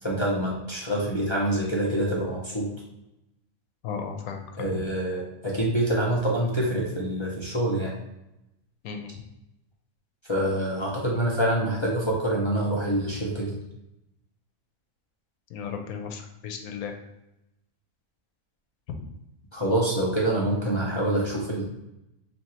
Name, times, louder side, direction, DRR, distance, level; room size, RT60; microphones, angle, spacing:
voice 1, 0.0-2.7 4.6-7.9 10.3-13.6 19.5-21.6, right 1 dB, 40° left, -4 dB, 0.4 m, -26 dB
voice 2, 3.8-4.8 8.8-9.1 15.5-16.9, left 6 dB, 85° left, 4 dB, 1.1 m, -35 dB
3.1 x 2.8 x 4.4 m, 0.89 s
omnidirectional pair, 1.5 m